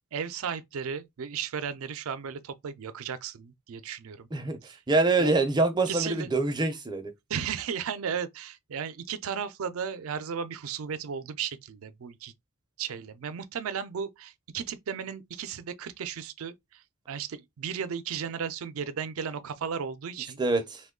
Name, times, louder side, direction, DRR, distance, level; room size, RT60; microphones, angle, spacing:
voice 1, 0.1-4.3 5.2-5.5 5.9-6.3 7.3-12.3 12.8-16.5 17.1-20.4, right 7 dB, 70° right, 0.4 m, -35 dB
voice 2, 4.9-7.1 20.4-20.8, right 3 dB, 20° right, 0.5 m, -25 dB
2.9 x 2.2 x 3.6 m
head